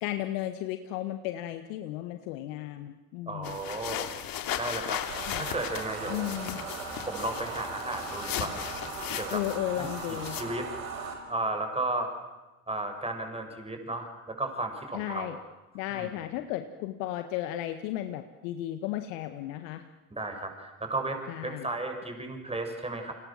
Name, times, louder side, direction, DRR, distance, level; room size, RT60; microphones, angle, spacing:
voice 1, 0.0-3.6 5.3-5.5 6.1-6.6 9.3-10.4 14.9-15.4 15.7-19.8 21.3-21.7, left 13 dB, 75° left, 8 dB, 1.6 m, -34 dB
voice 2, 3.3-4.1 4.6-5.0 5.4-6.3 7.0-8.6 9.1-9.4 9.8-12.1 12.7-15.4 15.9-16.1 20.1-23.1, right 2 dB, 15° right, 5 dB, 7.1 m, -34 dB
sound 1, 3.4-10.4, left 10 dB, 55° left, 3.0 m, -37 dB
sound 2, 5.1-11.1, right 4 dB, 85° right, 4.9 m, -38 dB
30.0 x 26.0 x 7.5 m, 1.1 s
hypercardioid pair, 70°, 40 cm